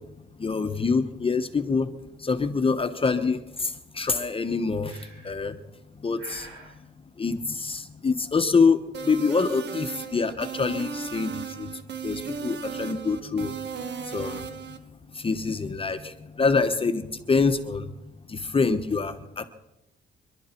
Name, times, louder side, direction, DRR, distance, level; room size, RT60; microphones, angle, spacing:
voice 1, 0.4-1.9 2.2-3.7 3.9-5.0 5.2-5.6 6.0-6.5 7.2-8.8 9.0-11.3 11.6-11.7 12.0-13.6 14.1-14.4 15.2-16.1 16.4-17.9 18.3-19.5, left 4 dB, 25° left, 8 dB, 1.1 m, -25 dB
Breathing, 4.9-5.5 6.2-6.8, right 2 dB, 90° right, 3.8 m, -46 dB
sound 1, 8.9-14.8, right 6 dB, 60° right, 1.4 m, -35 dB
26.5 x 11.5 x 4.5 m, 0.97 s
cardioid pair, 90°, 20 cm